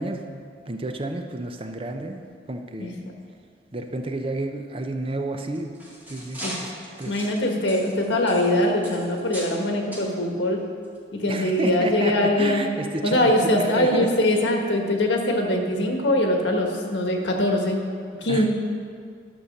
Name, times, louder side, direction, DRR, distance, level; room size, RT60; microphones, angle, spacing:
voice 1, 0.0-2.2 2.5-3.0 3.7-5.7 6.1-7.3 11.3-14.1 18.3-18.5, right 2 dB, 30° right, 5 dB, 0.6 m, -31 dB
sound 1, 5.5-9.6 9.9-10.1 10.8-11.0 11.5-11.6, equal, 10° right, 2.0 m, -38 dB
voice 2, 7.1-10.6 11.1-12.7 13.0-17.8 18.2-18.5, left 1 dB, 85° left, 2 dB, 1.5 m, -22 dB
11.0 x 5.7 x 6.6 m, 2.2 s
head